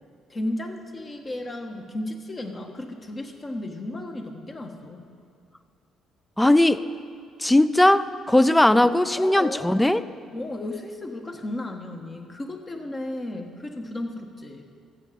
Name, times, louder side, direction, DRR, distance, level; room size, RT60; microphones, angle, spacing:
voice 1, 0.3-5.1 8.5-9.8 10.3-14.6, left 1 dB, 35° left, 4 dB, 1.4 m, -34 dB
voice 2, 6.4-6.8 7.4-10.0, left 1 dB, 10° left, 15 dB, 0.4 m, -18 dB
15.0 x 7.6 x 5.2 m, 2.3 s
hypercardioid pair, 50°, 0 cm